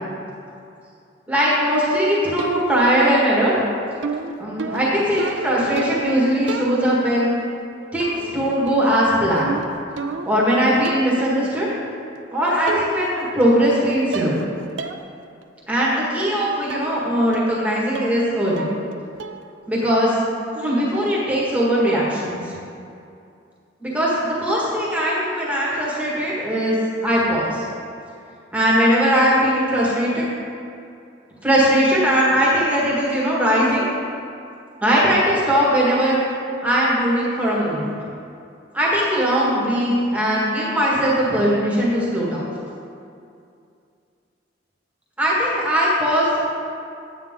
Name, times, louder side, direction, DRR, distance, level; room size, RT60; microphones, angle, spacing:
voice 1, 1.3-3.5 4.4-7.3 7.9-9.5 10.3-11.7 12.3-14.3 15.7-18.7 19.7-20.2 20.5-22.4 23.8-26.8 27.0-27.7 28.5-30.3 31.4-33.9 34.8-36.2 36.6-37.9 38.7-42.4 45.2-46.3, equal, 10° right, -6 dB, 1.7 m, -19 dB
sound 1, 2.4-2.9 4.0-6.2 6.5-7.1 8.0-8.4 8.7-10.5 10.8-11.2 12.2-12.3 12.7-13.1 13.4-13.8 14.1-14.5 14.8-15.0 15.4-15.5 16.7-16.9 17.3-17.6 17.9-18.3 18.6-18.9 19.2-19.5, right 4 dB, 80° right, 0.5 m, -31 dB
9.3 x 8.8 x 3.7 m, 2.5 s
head